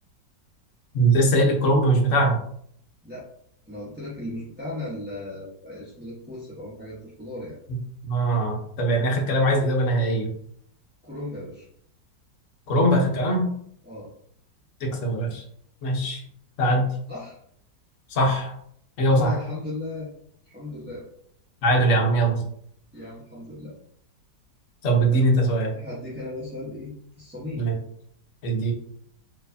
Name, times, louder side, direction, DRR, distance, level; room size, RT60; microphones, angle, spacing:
voice 1, 0.9-2.4 7.7-7.8 8.0-10.3 12.7-13.4 14.8-15.4 15.8-16.2 16.6-16.9 18.1-18.5 19.0-19.3 21.6-22.4 24.8-25.7 27.6-27.7 28.4-28.7, right 1 dB, 50° left, 0 dB, 1.1 m, -21 dB
voice 2, 3.7-7.6 11.0-11.7 13.8-14.1 17.1-17.4 19.1-20.1 20.4-21.0 22.9-23.7 25.1-25.2 25.7-27.7, left 2 dB, 10° right, -9 dB, 0.6 m, -36 dB
4.6 x 3.2 x 2.7 m, 0.67 s
omnidirectional pair, 2.0 m